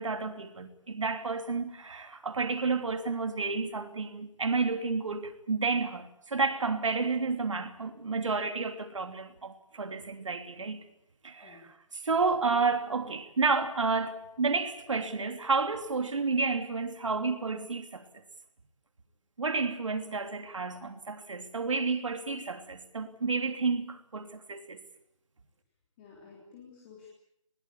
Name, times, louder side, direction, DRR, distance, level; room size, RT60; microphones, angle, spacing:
voice 1, 0.0-10.8 11.2-18.1 19.4-24.8, right 4 dB, 65° right, 3.2 m, -31 dB
voice 2, 26.0-27.1, left 6 dB, 20° left, 3.5 m, -52 dB
23.0 x 21.0 x 8.5 m
hypercardioid pair, 170°, 17 cm